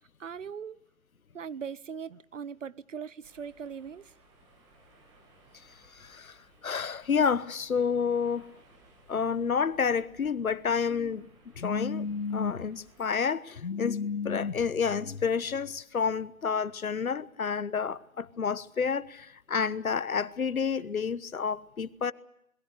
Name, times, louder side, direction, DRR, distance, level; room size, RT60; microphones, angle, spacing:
voice 1, 0.2-0.8 1.3-4.1, right 7 dB, 60° right, 0.9 m, -40 dB
sound 1, 3.2-13.2, right 2 dB, 10° right, 1.8 m, -61 dB
voice 2, 5.9-6.4 6.6-8.5 9.1-11.3 11.6-22.1, left 6 dB, 85° left, 1.2 m, -29 dB
28.0 x 21.5 x 6.6 m
hypercardioid pair, 165°, 41 cm